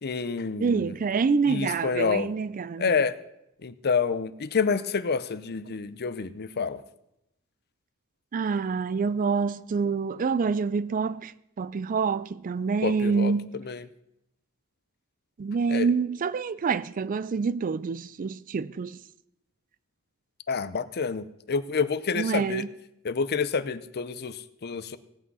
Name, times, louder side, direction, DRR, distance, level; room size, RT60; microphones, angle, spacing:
voice 1, 0.0-0.9 1.4-2.3 2.8-3.2 3.6-6.8 12.8-13.3 13.7-13.8 15.7-15.9 20.5-22.6 23.0-24.4 24.6-25.0, left 5 dB, 50° left, 0.6 m, -28 dB
voice 2, 0.6-3.0 8.3-11.3 11.6-13.6 15.4-19.0 22.1-22.7, right 5 dB, 40° right, 0.4 m, -27 dB
17.5 x 8.6 x 5.5 m
head